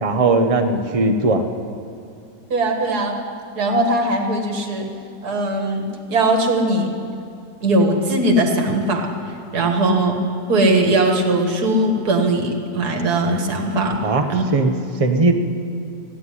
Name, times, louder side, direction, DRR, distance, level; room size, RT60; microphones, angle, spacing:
voice 1, 0.0-1.4 14.0-14.3 14.5-14.7 15.0-15.3, right 3 dB, 35° right, 6 dB, 0.6 m, -18 dB
voice 2, 2.5-3.1 3.6-4.9 5.2-6.9 7.6-9.0 9.5-10.2 10.5-14.0 14.3-14.5, right 2 dB, 65° right, 3 dB, 2.0 m, -19 dB
14.5 x 9.4 x 9.9 m, 2.5 s
omnidirectional pair, 1.9 m